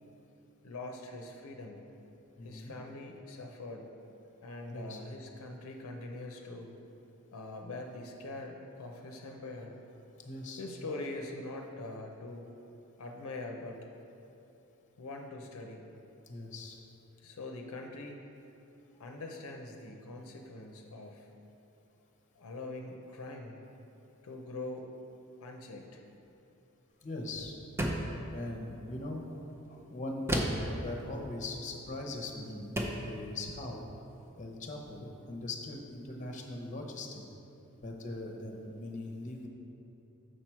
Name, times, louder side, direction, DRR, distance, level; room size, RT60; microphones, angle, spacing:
voice 1, 0.6-1.8 2.4-3.9 4.4-6.7 7.3-9.7 10.6-12.5 13.0-13.8 15.0-15.8 17.2-18.3 19.0-21.3 22.3-23.6 24.2-24.9 25.4-26.0, left 2 dB, 70° left, 2 dB, 0.6 m, -43 dB
voice 2, 2.4-2.7 4.7-5.0 10.2-10.6 16.3-16.8 27.0-27.5 28.3-29.4 29.7-32.7 33.1-33.9 34.4-37.2 37.8-39.5, left 2 dB, 35° left, 1 dB, 0.8 m, -40 dB
sound 1, 27.8-28.2 30.3-30.7 32.1-32.2 32.8-33.1, right 1 dB, 10° right, 0.5 m, -31 dB
6.5 x 5.9 x 4.4 m, 2.9 s
head